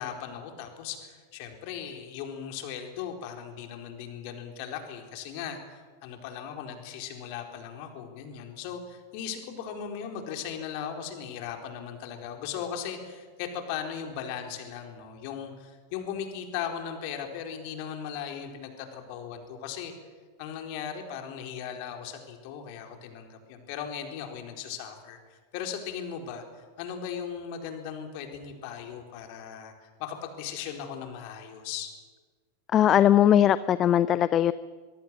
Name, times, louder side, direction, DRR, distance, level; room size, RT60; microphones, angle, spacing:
voice 1, 0.0-19.9 20.4-26.4 26.8-31.9, left 8 dB, 45° left, 4 dB, 4.3 m, -38 dB
voice 2, 32.7-34.5, left 11 dB, 30° left, 16 dB, 0.6 m, -20 dB
24.0 x 22.5 x 7.9 m, 1.5 s
figure-of-eight pair, 90°, 0 cm